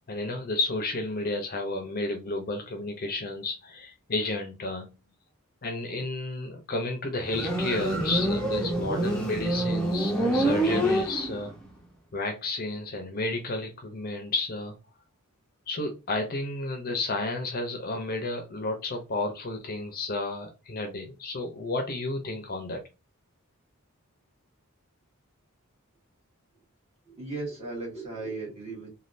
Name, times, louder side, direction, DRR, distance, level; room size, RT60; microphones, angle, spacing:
voice 1, 0.1-4.9 5.6-11.5 12.1-14.7 15.7-22.8, left 2 dB, 45° left, 0.6 m, -32 dB
Motorcycle, 7.2-11.6, right 1 dB, 5° left, 0.7 m, -26 dB
voice 2, 27.1-28.9, right 3 dB, 30° right, 1.6 m, -36 dB
3.3 x 2.3 x 2.5 m
head